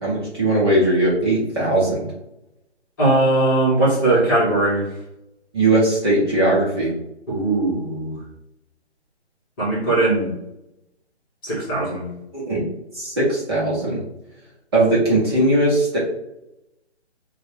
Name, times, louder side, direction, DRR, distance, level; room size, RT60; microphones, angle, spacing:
voice 1, 0.0-2.1 5.5-6.9 12.3-12.6 12.9-14.0 14.7-16.0, right 1 dB, 20° right, -8 dB, 1.0 m, -19 dB
voice 2, 3.0-4.9 7.3-8.2 9.6-10.3 11.4-12.1, right 2 dB, 20° left, -7 dB, 1.4 m, -19 dB
6.3 x 2.4 x 2.8 m, 0.87 s
figure-of-eight pair, 145°, 34 cm